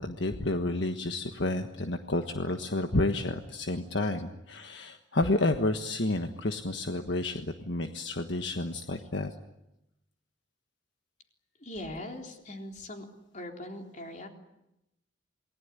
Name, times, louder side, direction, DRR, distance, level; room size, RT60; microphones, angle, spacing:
voice 1, 0.0-9.3, left 2 dB, 65° left, 6 dB, 1.4 m, -30 dB
voice 2, 11.6-13.1 13.3-14.3, left 1 dB, 40° left, 3 dB, 3.9 m, -41 dB
28.0 x 20.0 x 9.8 m, 0.88 s
head